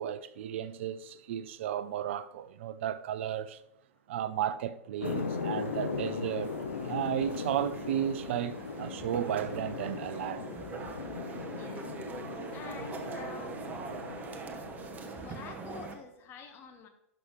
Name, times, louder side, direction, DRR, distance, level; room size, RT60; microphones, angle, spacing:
voice 1, 0.0-3.6 4.1-6.6 6.8-10.5, right 10 dB, 60° right, 0.6 m, -34 dB
sound 1, 5.0-15.7, left 5 dB, 75° left, 1.0 m, -39 dB
sound 2, 5.0-15.9, right 4 dB, 20° right, 1.0 m, -43 dB
voice 2, 11.4-11.9 12.5-13.6 15.2-16.9, left 6 dB, 35° left, 1.4 m, -48 dB
11.5 x 6.1 x 3.2 m
figure-of-eight pair, 100°, 7 cm